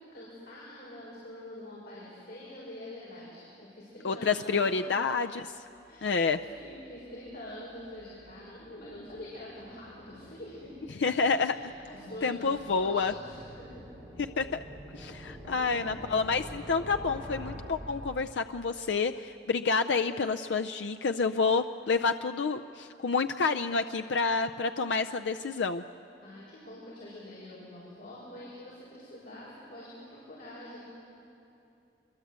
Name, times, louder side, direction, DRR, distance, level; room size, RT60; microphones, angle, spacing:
voice 1, 0.0-5.0 5.9-6.1 6.4-13.8 15.0-16.2 26.2-30.9, left 1 dB, 60° left, -7 dB, 6.2 m, -46 dB
voice 2, 4.0-5.5 6.0-6.4 11.0-11.6 12.2-13.1 14.4-14.6 14.9-25.8, left 4 dB, 75° left, 7 dB, 0.5 m, -28 dB
sound 1, 5.7-18.6, equal, ahead, 6.5 m, -48 dB
26.0 x 22.5 x 8.2 m, 2.8 s
head